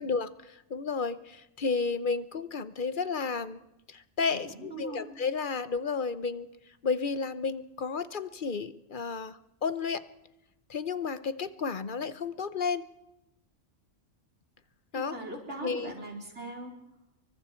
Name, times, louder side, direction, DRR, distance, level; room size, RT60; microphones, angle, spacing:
voice 1, 0.0-3.6 3.9-6.5 6.8-10.0 10.7-12.8 14.9-15.2 15.6-15.9, left 5 dB, 45° left, 13 dB, 0.9 m, -32 dB
voice 2, 4.3-5.1 14.9-16.7, right 2 dB, 65° right, 0 dB, 4.4 m, -40 dB
28.0 x 23.5 x 4.5 m, 0.90 s
omnidirectional pair, 1.3 m